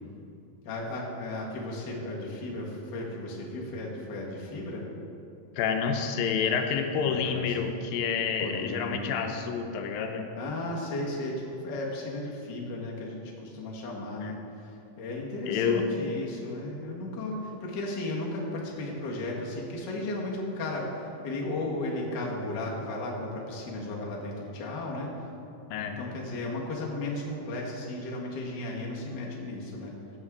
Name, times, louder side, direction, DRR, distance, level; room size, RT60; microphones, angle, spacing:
voice 1, 0.6-4.9 7.0-7.3 8.4-9.2 10.4-25.1 25.8-29.9, left 2 dB, 45° left, -3 dB, 1.4 m, -35 dB
voice 2, 5.6-10.3 14.2-14.3 15.5-15.9 25.7-25.9, left 6 dB, 85° left, 5 dB, 2.4 m, -28 dB
15.0 x 8.0 x 3.7 m, 2.8 s
omnidirectional pair, 4.0 m